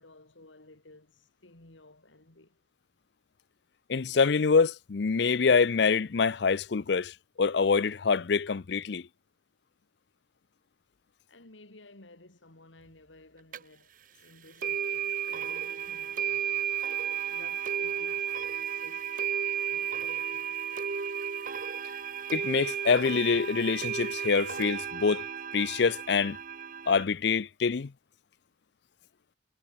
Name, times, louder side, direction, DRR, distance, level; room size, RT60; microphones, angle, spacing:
voice 1, 0.0-2.6 11.3-13.9 14.2-16.8 17.3-19.1 19.5-20.6, left 2 dB, 80° left, 2.7 m, -55 dB
voice 2, 3.9-9.0 22.3-25.3 25.5-26.4 26.9-27.9, left 5 dB, 60° left, 0.5 m, -25 dB
sound 1, 13.5-13.6 14.6-27.0, right 8 dB, 45° right, 0.7 m, -33 dB
head